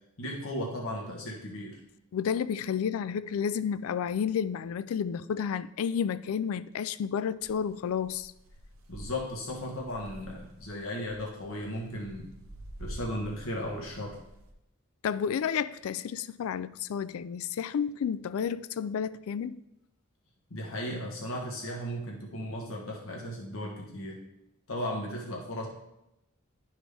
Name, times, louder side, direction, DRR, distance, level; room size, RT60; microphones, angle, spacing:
voice 1, 0.2-1.8 8.9-12.3 12.8-14.2 20.5-24.2 24.7-25.7, left 1 dB, 70° left, 1.3 m, -36 dB
voice 2, 2.1-8.3 15.0-19.6, left 7 dB, 90° left, 0.3 m, -31 dB
sound 1, 7.4-14.5, equal, 80° right, 1.0 m, -48 dB
11.5 x 4.3 x 3.4 m
head